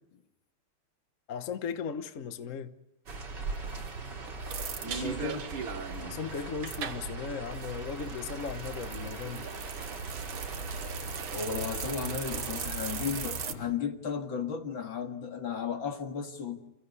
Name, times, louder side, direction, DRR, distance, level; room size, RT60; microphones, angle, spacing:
voice 1, 1.3-2.7 6.0-9.5, left 6 dB, 45° left, 1.2 m, -37 dB
sound 1, 3.1-13.5, right 2 dB, 50° right, 3.8 m, -40 dB
sound 2, 3.1-13.5, right 7 dB, 75° right, 2.2 m, -39 dB
voice 2, 4.8-5.5 11.3-16.6, left 6 dB, 65° left, 2.6 m, -34 dB
29.0 x 16.0 x 9.7 m
omnidirectional pair, 2.4 m